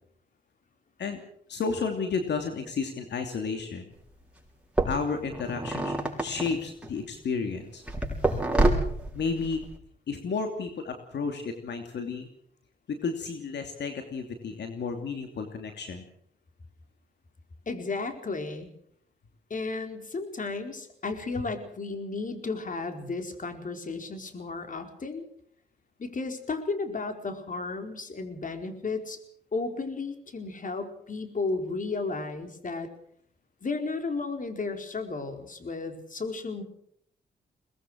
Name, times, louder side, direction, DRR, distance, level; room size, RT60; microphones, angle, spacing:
voice 1, 1.5-3.9 4.9-7.8 9.1-9.6 10.1-12.3 12.9-16.0, left 5 dB, 75° left, 5 dB, 2.9 m, -32 dB
sound 1, 3.9-4.0 4.8-7.1 7.9-9.8, right 2 dB, 5° right, 6.7 m, -27 dB
voice 2, 17.7-18.7 19.5-25.2 26.0-29.2 29.5-32.9 33.6-36.6, left 3 dB, 45° left, 6 dB, 4.5 m, -33 dB
23.0 x 20.0 x 6.3 m, 0.67 s
cardioid pair, 70°, 18 cm